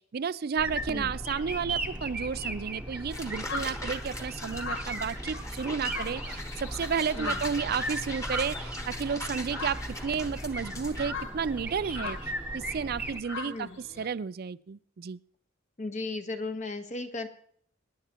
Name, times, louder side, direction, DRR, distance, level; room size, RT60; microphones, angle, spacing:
voice 1, 0.0-13.7 14.0-15.2, right 6 dB, 50° right, 17 dB, 0.4 m, -32 dB
sound 1, 0.6-13.2, right 1 dB, 5° right, 1.0 m, -37 dB
sound 2, 3.1-11.1, left 1 dB, 15° left, 1.4 m, -41 dB
sound 3, 3.5-14.1, left 3 dB, 85° left, 2.0 m, -41 dB
voice 2, 13.4-13.8 15.8-17.3, left 2 dB, 35° left, 6 dB, 1.1 m, -36 dB
22.5 x 10.5 x 2.9 m, 0.62 s
head